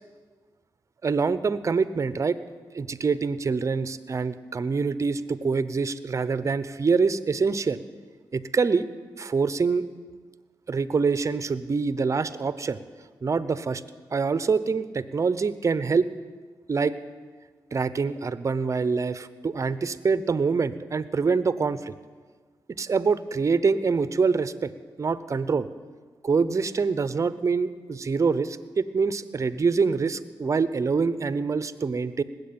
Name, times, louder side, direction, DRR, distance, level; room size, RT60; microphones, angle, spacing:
voice 1, 1.0-2.4 2.7-7.8 8.3-8.9 9.2-9.8 10.7-12.8 13.2-13.8 14.1-16.1 16.7-16.9 17.7-21.9 22.8-24.7 25.0-25.7 26.2-32.2, right 5 dB, 40° right, 14 dB, 0.8 m, -25 dB
19.5 x 8.2 x 8.7 m, 1.5 s
cardioid pair, 65°, 8 cm